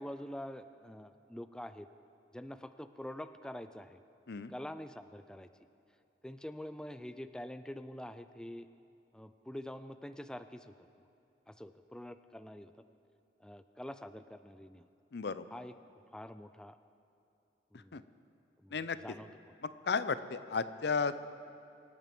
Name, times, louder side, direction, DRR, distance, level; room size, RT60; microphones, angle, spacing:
voice 1, 0.0-1.9 2.3-4.0 4.5-5.5 6.2-8.7 9.1-10.9 11.5-12.7 13.4-14.9 15.5-15.7 16.1-16.8 17.7-18.0 18.6-18.8 19.0-19.3, left 1 dB, 5° left, 11 dB, 0.4 m, -45 dB
voice 2, 15.1-15.5 17.7-18.0 18.7-19.0 19.6-21.2, left 5 dB, 65° left, 14 dB, 0.6 m, -34 dB
24.5 x 9.0 x 6.1 m, 2.8 s
head